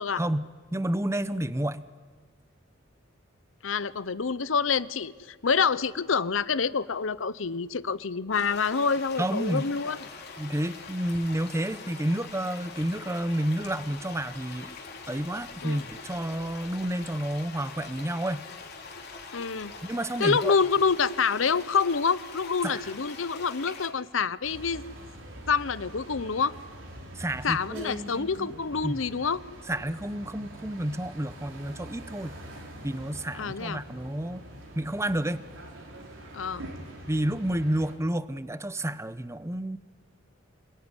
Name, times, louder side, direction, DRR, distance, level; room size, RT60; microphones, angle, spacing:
voice 1, 0.1-1.8 9.2-9.7 10.4-14.7 15.1-18.5 19.8-20.6 22.6-22.8 27.2-28.5 28.8-29.0 29.7-32.4 32.8-34.4 34.8-35.5 37.1-39.8, right 1 dB, 15° right, 14 dB, 0.9 m, -30 dB
voice 2, 3.6-10.1 15.6-15.9 19.3-19.7 20.2-24.8 25.5-26.5 27.4-29.4 33.3-33.8 36.3-36.7, left 5 dB, 85° left, 17 dB, 0.8 m, -27 dB
sound 1, 8.3-23.9, left 4 dB, 55° left, 4.0 m, -44 dB
sound 2, 24.4-38.0, right 1 dB, 85° right, 4.7 m, -45 dB
28.0 x 20.5 x 9.9 m, 1.5 s
head